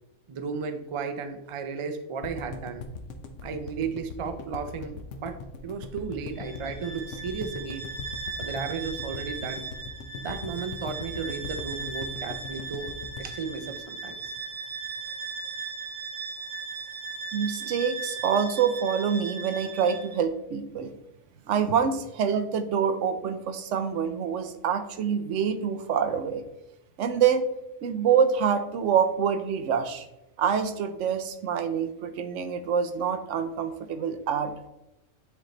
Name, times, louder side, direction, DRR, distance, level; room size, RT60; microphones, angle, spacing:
voice 1, 0.3-2.8 3.4-7.9 8.4-9.7 10.1-12.9 13.2-14.2, right 5 dB, 55° right, 8 dB, 0.3 m, -34 dB
sound 1, 2.2-14.4 14.7-14.8 15.0-15.1, left 5 dB, 75° left, 1.0 m, -40 dB
Bowed string instrument, 6.3-20.2, right 4 dB, 35° right, 1.9 m, -38 dB
voice 2, 17.3-20.9 21.5-26.4 27.0-27.5 27.8-30.1 30.4-34.7, right 7 dB, 75° right, 8 dB, 0.9 m, -26 dB
8.9 x 3.2 x 3.8 m, 0.90 s
omnidirectional pair, 1.3 m